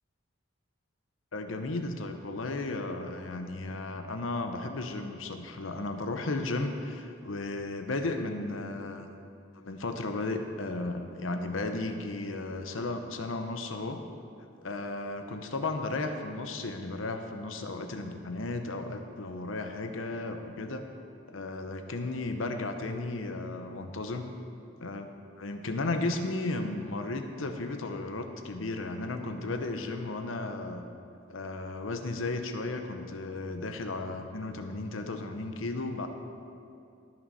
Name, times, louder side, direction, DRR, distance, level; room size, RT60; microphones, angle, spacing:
voice 1, 1.3-9.1 9.5-14.0 14.4-20.9 21.3-24.3 24.8-25.1 25.4-30.8 31.3-36.1, left 2 dB, 85° left, 6 dB, 0.9 m, -34 dB
18.5 x 6.1 x 4.2 m, 2.5 s
head